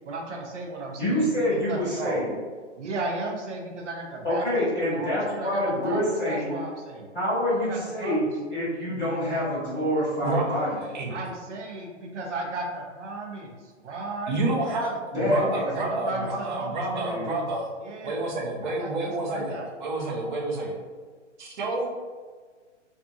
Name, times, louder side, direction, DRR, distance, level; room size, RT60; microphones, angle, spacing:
voice 1, 0.0-2.2 2.8-7.1 7.6-8.2 11.1-14.4 15.7-17.2 17.8-18.2 18.6-19.7, right 2 dB, 75° right, 0 dB, 0.8 m, -35 dB
voice 2, 1.0-2.3 4.2-6.6 7.1-10.7 15.1-15.7 16.8-17.3, left 1 dB, 5° left, -22 dB, 0.4 m, -26 dB
voice 3, 10.2-11.1 14.3-17.7 18.0-20.8 21.4-21.9, right 2 dB, 40° right, -2 dB, 0.6 m, -29 dB
2.6 x 2.4 x 2.5 m, 1.5 s
hypercardioid pair, 150°, 36 cm